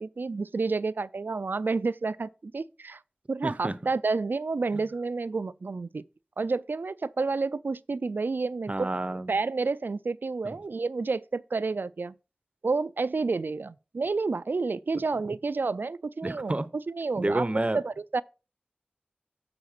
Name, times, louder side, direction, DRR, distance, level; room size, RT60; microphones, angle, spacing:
voice 1, 0.0-3.0 3.3-6.0 6.4-8.9 9.3-12.1 12.6-16.6 16.9-17.5 17.7-18.2, right 4 dB, 80° right, 0.3 m, -30 dB
voice 2, 3.4-3.7 8.7-9.3 10.4-10.6 16.2-16.7 17.2-17.8, right 2 dB, 35° right, 0.6 m, -29 dB
7.0 x 4.0 x 6.5 m
wide cardioid pair, 45°, 3 cm